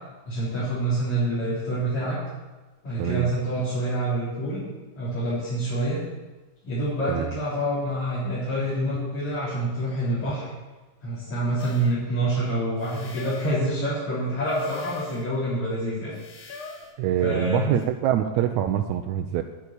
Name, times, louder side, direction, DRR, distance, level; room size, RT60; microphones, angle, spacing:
voice 1, 0.2-2.2 2.8-4.6 4.9-6.0 6.6-10.5 11.0-16.1 17.2-17.6, right 1 dB, 65° left, -11 dB, 5.0 m, -27 dB
voice 2, 3.0-3.3 7.1-7.3 17.0-19.4, right 11 dB, 80° right, 5 dB, 1.9 m, -24 dB
sound 1, 11.6-12.0 12.8-13.6 14.5-15.3 16.1-17.0 17.8-17.9, left 4 dB, 80° left, 3.1 m, -41 dB
10.5 x 8.2 x 8.5 m, 1.2 s
omnidirectional pair, 3.5 m